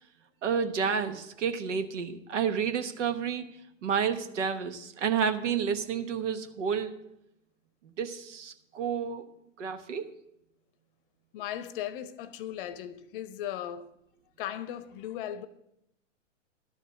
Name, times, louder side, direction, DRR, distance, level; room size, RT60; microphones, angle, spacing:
voice 1, 0.4-7.0 8.0-9.3 9.6-10.1, right 7 dB, 70° right, 1.2 m, -30 dB
voice 2, 11.3-13.9 14.4-15.5, left 11 dB, 45° left, 0.8 m, -37 dB
12.5 x 5.0 x 7.9 m
hypercardioid pair, 120°, 38 cm